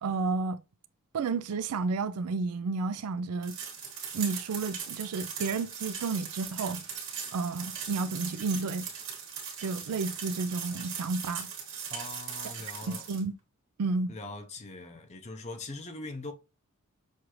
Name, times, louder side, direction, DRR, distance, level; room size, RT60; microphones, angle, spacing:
voice 1, 0.0-0.6 1.1-3.6 4.1-6.8 7.3-8.9 9.6-11.5 12.9-13.3 13.8-14.2, right 4 dB, 80° right, 0.4 m, -31 dB
sound 1, 3.4-13.2, right 7 dB, 60° right, 1.4 m, -39 dB
voice 2, 11.9-13.1 14.1-16.3, left 2 dB, 30° left, 0.6 m, -41 dB
6.4 x 2.6 x 2.9 m
head